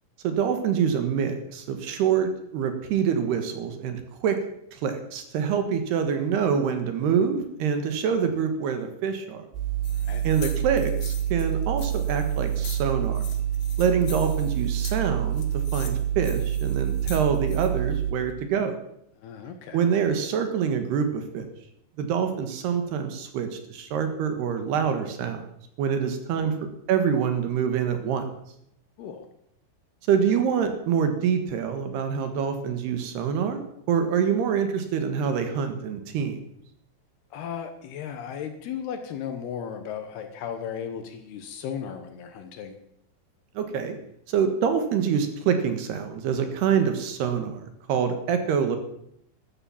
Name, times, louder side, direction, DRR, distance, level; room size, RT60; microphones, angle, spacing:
voice 1, 0.2-4.4 4.7-9.4 10.2-13.2 13.8-18.8 19.7-21.5 22.0-25.4 25.8-26.5 26.9-28.3 30.1-36.4 43.5-44.0 44.3-48.8, right 7 dB, 65° right, 7 dB, 3.2 m, -26 dB
sound 1, 9.5-18.1, right 10 dB, 90° right, 4.0 m, -27 dB
sound 2, 9.8-17.7, left 9 dB, 90° left, 4.2 m, -44 dB
voice 2, 19.2-19.9 26.4-26.6 29.0-29.3 37.3-42.8, left 8 dB, 70° left, 7 dB, 2.8 m, -36 dB
13.5 x 11.5 x 7.2 m, 0.75 s
omnidirectional pair, 5.4 m